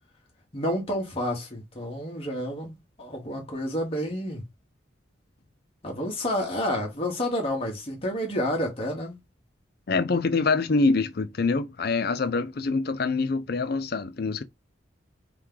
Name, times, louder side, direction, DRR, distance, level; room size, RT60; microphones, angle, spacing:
voice 1, 0.5-4.4 5.8-9.2, equal, 30° left, 1.2 m, -29 dB
voice 2, 9.9-14.4, left 3 dB, 55° left, 0.5 m, -25 dB
3.4 x 3.1 x 3.7 m
head